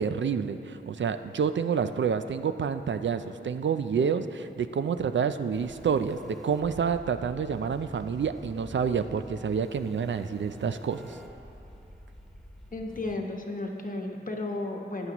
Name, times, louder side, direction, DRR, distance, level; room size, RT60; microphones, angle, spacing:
voice 1, 0.0-11.2, right 6 dB, 70° right, 10 dB, 0.4 m, -28 dB
sound 1, 5.5-13.2, equal, ahead, 1.3 m, -47 dB
voice 2, 12.7-15.1, left 2 dB, 45° left, 2 dB, 1.0 m, -33 dB
14.0 x 9.4 x 3.0 m, 2.6 s
wide cardioid pair, 80°, 20 cm